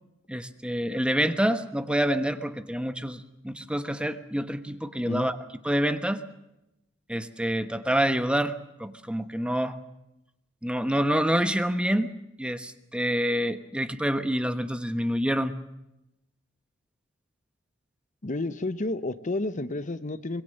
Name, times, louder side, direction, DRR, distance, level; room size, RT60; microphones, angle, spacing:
voice 1, 0.3-5.4 5.6-6.2 7.1-8.5 8.8-9.8 10.6-12.1 12.4-15.6, equal, 5° right, 10 dB, 1.1 m, -27 dB
voice 2, 18.2-20.4, left 2 dB, 40° left, 12 dB, 0.9 m, -31 dB
25.0 x 22.0 x 6.6 m, 0.88 s
head